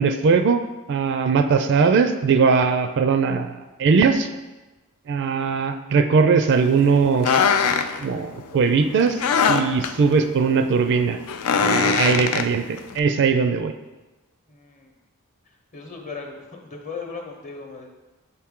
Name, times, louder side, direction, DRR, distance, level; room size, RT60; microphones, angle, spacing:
voice 1, 0.0-4.3 5.1-7.4 8.0-9.2 9.5-11.2 11.5-13.7, right 5 dB, 55° right, 8 dB, 0.4 m, -20 dB
sound 1, 6.5-13.0, left 6 dB, 75° left, 0.4 m, -23 dB
voice 2, 14.5-14.9 15.7-17.9, left 4 dB, 35° left, 2 dB, 0.9 m, -37 dB
6.6 x 4.4 x 3.6 m, 1.1 s
head